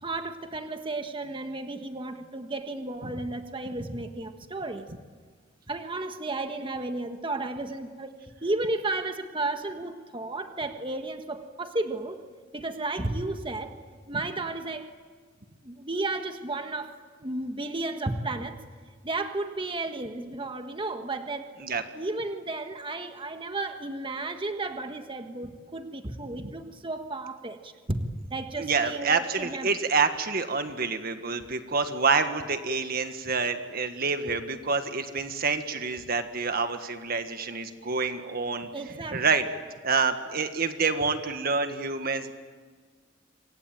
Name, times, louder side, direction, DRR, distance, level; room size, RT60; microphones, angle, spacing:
voice 1, 0.0-4.9 5.7-12.2 12.5-13.7 14.1-14.9 15.6-18.6 19.0-21.5 21.9-29.7 38.7-39.2, right 2 dB, 25° right, 6 dB, 1.6 m, -33 dB
voice 2, 28.6-38.7 39.1-39.5 39.8-42.3, right 4 dB, 50° right, 8 dB, 1.6 m, -27 dB
27.0 x 23.5 x 9.0 m, 1.5 s
head